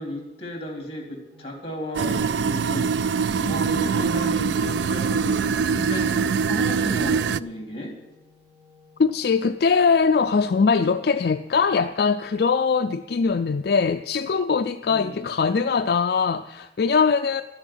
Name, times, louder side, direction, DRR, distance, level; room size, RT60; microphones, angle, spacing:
voice 1, 0.0-3.1 3.4-8.0 14.9-15.3, left 1 dB, 35° left, 1 dB, 3.2 m, -34 dB
Organ, 1.3-12.2, left 4 dB, 20° right, 2.2 m, -57 dB
sound 1, 1.9-7.4, right 6 dB, 80° right, 0.4 m, -23 dB
voice 2, 9.0-17.4, left 5 dB, 60° left, 7 dB, 0.4 m, -21 dB
12.5 x 7.3 x 10.0 m, 1.0 s
head